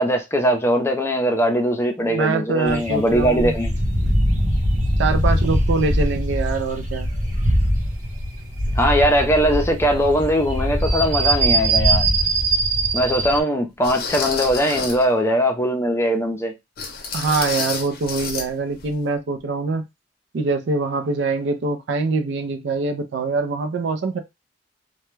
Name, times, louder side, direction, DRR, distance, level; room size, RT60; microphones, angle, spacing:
voice 1, 0.0-3.7 8.8-12.1 12.9-16.5, equal, 15° left, 0.5 m, -20 dB
voice 2, 2.0-3.5 5.0-7.1 17.1-19.8 20.3-24.2, right 3 dB, 70° right, 0.4 m, -24 dB
sound 1, 2.7-13.4, right 1 dB, 45° right, 0.8 m, -22 dB
sound 2, 11.9-12.0 12.7-12.8 13.8-15.1 16.8-18.5 18.8-18.9 19.4-19.5, left 5 dB, 55° left, 0.6 m, -29 dB
2.2 x 2.1 x 3.1 m
head